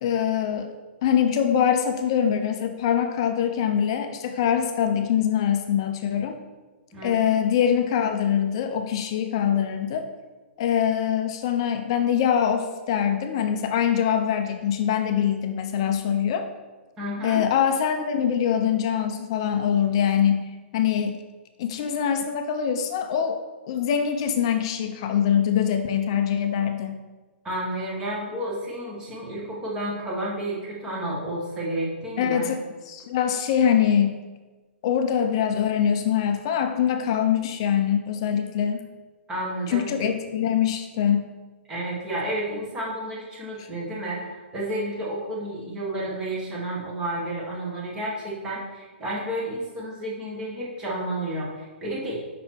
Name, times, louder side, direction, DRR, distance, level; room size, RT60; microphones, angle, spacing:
voice 1, 0.0-0.7 1.0-6.4 7.0-10.1 10.6-16.5 17.2-21.2 21.6-23.4 23.7-27.0 32.2-32.6 32.9-34.2 34.8-38.8 39.7-41.3, left 8 dB, 25° left, 7 dB, 0.3 m, -23 dB
voice 2, 6.9-7.4 17.0-17.4 27.4-32.5 39.3-39.9 41.7-52.2, right 1 dB, 10° right, -5 dB, 1.0 m, -31 dB
5.4 x 4.1 x 4.3 m, 1.3 s
hypercardioid pair, 175°, 7 cm